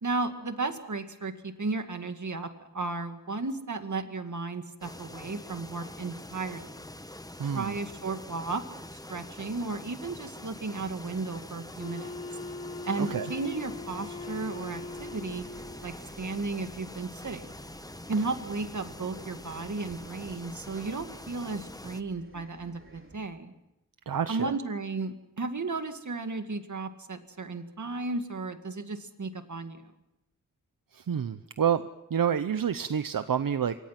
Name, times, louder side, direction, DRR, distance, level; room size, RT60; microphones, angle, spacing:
voice 1, 0.0-6.8 7.5-8.6 8.9-12.1 12.8-15.4 15.8-17.5 18.1-23.5 24.3-29.9, right 3 dB, 60° right, 7 dB, 2.2 m, -34 dB
sound 1, 4.8-22.0, left 1 dB, 10° left, 0.9 m, -45 dB
voice 2, 7.4-7.8 13.0-13.3 24.1-24.5 30.9-31.8 32.1-33.7, right 8 dB, 80° right, 11 dB, 0.8 m, -28 dB
Wind instrument woodwind instrument, 11.8-15.9, left 3 dB, 45° left, 2.1 m, -41 dB
Bus, 13.5-23.2, right 2 dB, 40° right, 3.9 m, -53 dB
27.0 x 25.0 x 6.0 m, 0.88 s
wide cardioid pair, 95°, 33 cm